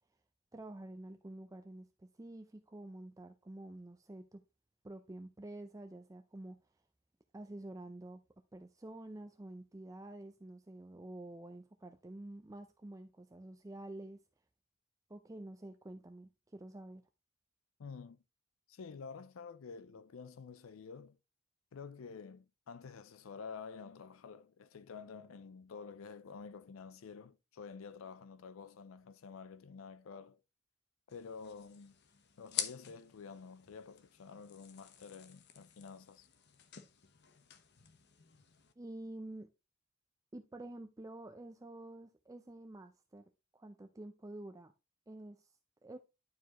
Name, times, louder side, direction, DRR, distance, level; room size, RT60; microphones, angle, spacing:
voice 1, 0.5-4.4 4.8-6.6 7.3-8.2 8.5-14.2 15.1-17.0 38.8-39.5 40.3-44.7 45.1-45.5 45.8-46.0, right 1 dB, 15° right, 0.5 m, -49 dB
voice 2, 17.8-18.2 18.7-21.2 21.7-30.4 31.1-32.0 32.4-36.3, left 5 dB, 80° left, 0.5 m, -49 dB
sound 1, 31.1-38.7, left 9 dB, 55° left, 0.9 m, -47 dB
11.5 x 4.8 x 2.9 m
head